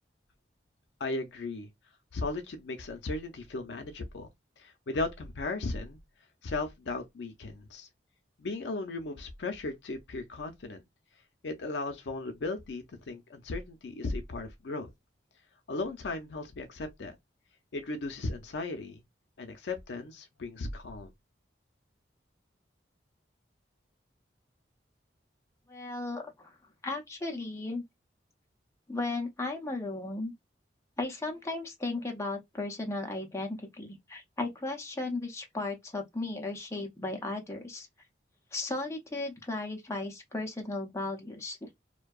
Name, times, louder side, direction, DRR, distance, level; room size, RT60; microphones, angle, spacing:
voice 1, 1.0-1.7 2.1-4.3 4.6-6.0 6.4-7.9 8.4-10.8 11.4-14.9 15.7-17.1 17.7-19.0 19.4-21.1, left 3 dB, 75° left, 0.5 m, -36 dB
voice 2, 25.7-26.5 26.8-27.8 28.9-30.3 31.0-37.9 38.5-41.7, left 2 dB, 15° left, 0.5 m, -35 dB
2.6 x 2.2 x 2.2 m
head